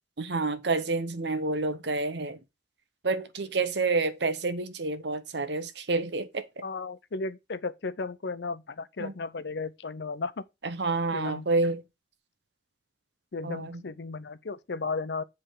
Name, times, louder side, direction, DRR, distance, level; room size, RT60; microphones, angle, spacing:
voice 1, 0.2-2.4 3.0-6.5 9.0-9.1 10.6-11.8 13.4-13.8, right 3 dB, 65° right, 0.9 m, -29 dB
voice 2, 6.6-10.4 11.1-11.5 13.3-15.2, left 4 dB, 65° left, 0.6 m, -34 dB
7.8 x 3.5 x 6.4 m
head